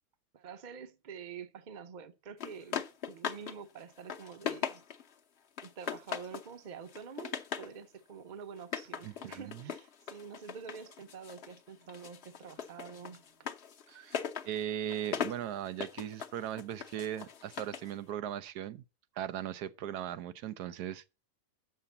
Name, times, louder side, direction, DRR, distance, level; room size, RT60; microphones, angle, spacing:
voice 1, 0.3-4.8 5.6-13.5, right 6 dB, 40° right, 0.7 m, -47 dB
sound 1, 2.4-3.6 3.9-5.1 5.6-6.5 6.9-7.7 8.6-11.6 11.9-17.9, left 7 dB, 50° left, 1.0 m, -39 dB
voice 2, 9.0-9.7 13.9-14.2 14.4-18.8 19.2-21.1, right 11 dB, 85° right, 1.2 m, -38 dB
6.9 x 5.8 x 7.0 m
omnidirectional pair, 1.6 m